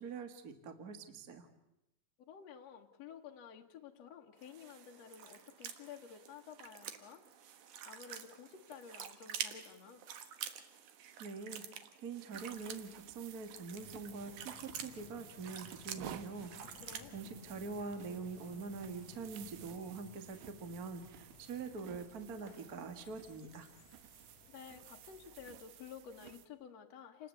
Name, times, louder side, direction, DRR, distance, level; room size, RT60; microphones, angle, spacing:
voice 1, 0.0-1.5 11.2-11.6 12.0-16.8 17.1-23.7, right 4 dB, 40° right, 8 dB, 1.4 m, -44 dB
voice 2, 2.3-7.2 7.9-10.0 16.8-17.1 24.5-27.3, left 7 dB, 55° left, 2 dB, 2.0 m, -52 dB
sound 1, 4.4-17.1, right 8 dB, 60° right, 2.5 m, -48 dB
sound 2, 12.3-26.5, right 11 dB, 80° right, 3.1 m, -55 dB
sound 3, 13.8-25.5, left 8 dB, 80° left, 1.4 m, -60 dB
29.0 x 20.0 x 8.4 m, 0.91 s
omnidirectional pair, 4.6 m